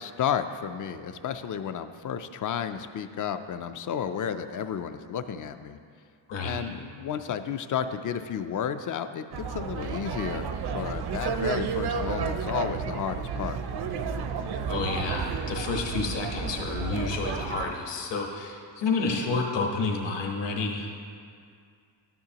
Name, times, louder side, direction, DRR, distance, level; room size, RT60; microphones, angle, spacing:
voice 1, 0.0-5.8 6.4-10.5 10.7-13.6 19.1-19.5, left 8 dB, 45° left, 10 dB, 0.4 m, -32 dB
sound 1, 9.3-17.7, right 6 dB, 55° right, 0.6 m, -32 dB
voice 2, 14.7-21.1, left 3 dB, 65° left, 1 dB, 1.3 m, -30 dB
12.5 x 9.4 x 2.9 m, 2.2 s
wide cardioid pair, 155°, 46 cm